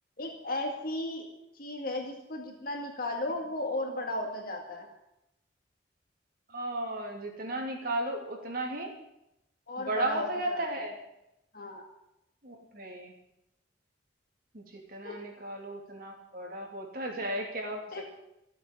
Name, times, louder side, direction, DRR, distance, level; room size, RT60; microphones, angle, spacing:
voice 1, 0.2-1.3 1.5-4.9 9.7-10.8 11.5-11.9 15.0-15.3 17.9-18.0, left 1 dB, 50° left, 2 dB, 2.1 m, -35 dB
voice 2, 6.5-8.9 9.8-10.9 12.4-13.1 14.5-14.6 14.9-17.8, right 1 dB, 50° right, 1 dB, 3.0 m, -34 dB
14.0 x 8.1 x 10.0 m, 0.85 s
head